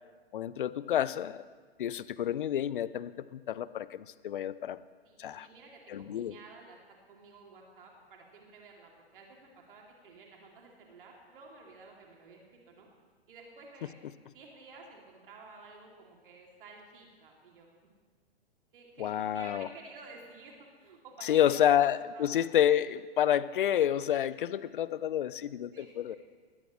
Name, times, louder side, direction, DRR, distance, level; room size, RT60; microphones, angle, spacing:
voice 1, 0.3-1.5 1.8-4.8 5.2-5.5 5.9-6.4 19.0-19.7 21.2-26.2, left 10 dB, 55° left, 18 dB, 0.6 m, -29 dB
voice 2, 5.0-6.8 7.1-12.9 13.3-17.7 18.7-21.8 22.1-22.4 25.7-26.2, right 3 dB, 55° right, 0 dB, 2.9 m, -52 dB
19.5 x 17.0 x 3.2 m, 1.5 s
figure-of-eight pair, 110°, 32 cm